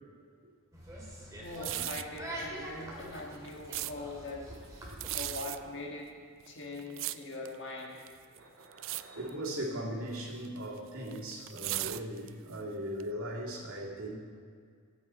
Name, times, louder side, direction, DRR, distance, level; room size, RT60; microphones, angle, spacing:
sound 1, 0.7-5.1, right 1 dB, 15° right, 2.2 m, -44 dB
voice 1, 1.4-4.5 4.9-6.1 6.5-8.1, left 2 dB, 55° left, -1 dB, 1.7 m, -42 dB
sound 2, 1.5-2.2 3.0-3.9 4.9-5.6 6.4-7.6 8.0-8.4 8.7-9.0 9.3-9.6 10.4-12.5 13.0-13.1, right 16 dB, 65° right, 0.3 m, -37 dB
voice 2, 4.8-5.3 8.3-14.2, right 1 dB, 85° right, -2 dB, 2.2 m, -39 dB
15.5 x 8.8 x 4.2 m, 2.1 s
head